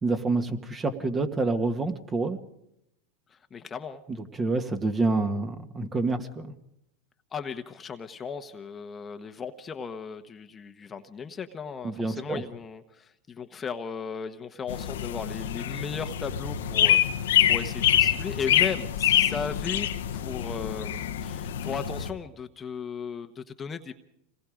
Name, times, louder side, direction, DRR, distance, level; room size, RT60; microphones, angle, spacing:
voice 1, 0.0-2.4 4.4-6.5 11.8-12.4, right 3 dB, 20° right, 7 dB, 1.8 m, -27 dB
voice 2, 3.3-4.0 7.3-24.0, left 6 dB, 25° left, 7 dB, 1.2 m, -36 dB
sound 1, 14.7-22.1, left 11 dB, 90° left, 1.2 m, -25 dB
27.0 x 19.5 x 5.1 m, 0.79 s
supercardioid pair, 120°, 0 cm